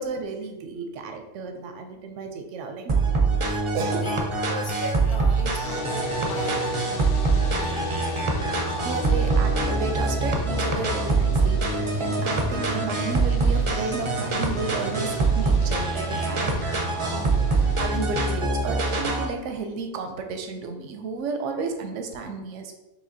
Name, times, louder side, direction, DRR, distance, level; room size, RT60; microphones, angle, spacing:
voice 1, 0.0-2.9 3.7-4.1 8.8-16.5 17.0-22.7, right 4 dB, 90° right, 5 dB, 0.9 m, -33 dB
sound 1, 2.9-19.3, right 3 dB, 40° right, 0.4 m, -24 dB
voice 2, 4.5-7.1 7.4-8.2, left 2 dB, 55° left, 1 dB, 0.8 m, -38 dB
sound 2, 5.6-18.2, left 2 dB, 75° left, 1.0 m, -34 dB
4.9 x 3.4 x 2.7 m, 1.0 s
omnidirectional pair, 1.2 m